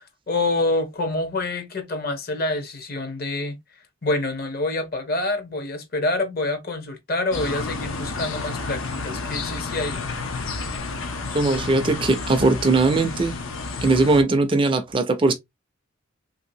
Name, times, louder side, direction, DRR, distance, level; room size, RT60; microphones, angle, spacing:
voice 1, 0.3-3.6 4.0-10.0, left 2 dB, 50° left, 0.8 m, -26 dB
sound 1, 7.3-14.2, left 3 dB, 85° left, 0.8 m, -30 dB
voice 2, 11.3-13.3 13.8-15.3, right 3 dB, 25° right, 0.4 m, -19 dB
3.2 x 2.7 x 2.6 m
head